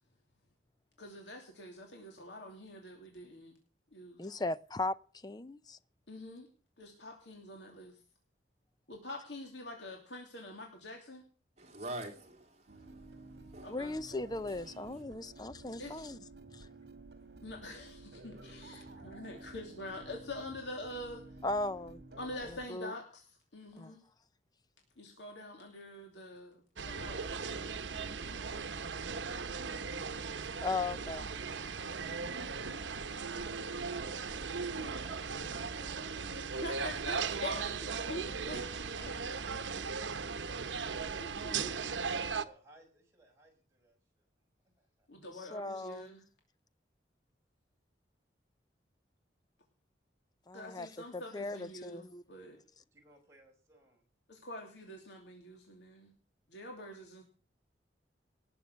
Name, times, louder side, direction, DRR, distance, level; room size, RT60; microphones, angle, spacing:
voice 1, 1.0-3.5 3.9-4.3 6.1-6.5 6.8-8.0 8.9-11.2 13.6-14.0 15.8-16.1 17.4-21.2 22.2-23.2 23.5-24.0 25.0-27.5 36.4-39.1 39.8-40.0 41.2-42.0 45.1-46.2 50.5-52.6 54.3-56.1 56.5-57.2, left 1 dB, 70° left, 2.8 m, -46 dB
voice 2, 4.2-4.9 5.2-5.8 13.7-16.2 21.4-22.0 22.7-22.9 23.8-23.9 30.6-31.3 45.5-46.1 50.5-52.2, left 2 dB, 20° left, 0.6 m, -37 dB
voice 3, 11.6-13.8, right 1 dB, 35° right, 3.2 m, -45 dB
sound 1, 12.7-22.7, right 2 dB, 60° right, 2.2 m, -52 dB
sound 2, 26.8-42.4, right 5 dB, 90° right, 1.0 m, -38 dB
voice 4, 34.5-36.2 36.5-36.6 42.4-44.3 44.8-45.1 52.9-54.1, right 1 dB, 15° right, 5.3 m, -60 dB
18.5 x 7.1 x 6.4 m
head